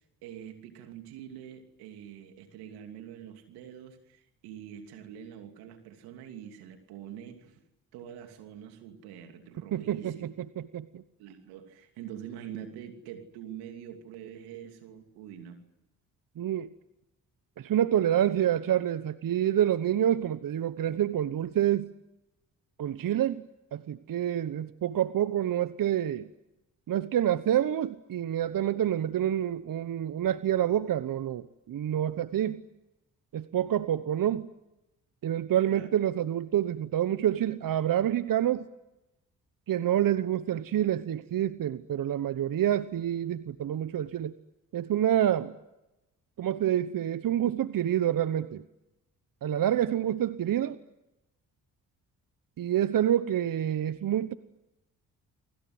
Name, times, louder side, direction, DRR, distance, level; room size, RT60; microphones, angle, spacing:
voice 1, 0.2-7.6 7.9-10.3 11.2-15.6 35.7-35.9, right 9 dB, 90° right, 6 dB, 2.9 m, -45 dB
voice 2, 9.7-11.0 16.4-16.7 17.6-21.9 22.8-23.4 23.7-26.3 26.9-32.6 33.3-34.5 35.2-38.7 39.7-44.3 44.7-45.5 46.4-48.6 49.4-50.8 52.6-54.3, right 11 dB, 60° right, 13 dB, 1.1 m, -27 dB
30.0 x 24.0 x 7.9 m, 0.96 s
hypercardioid pair, 45°, 37 cm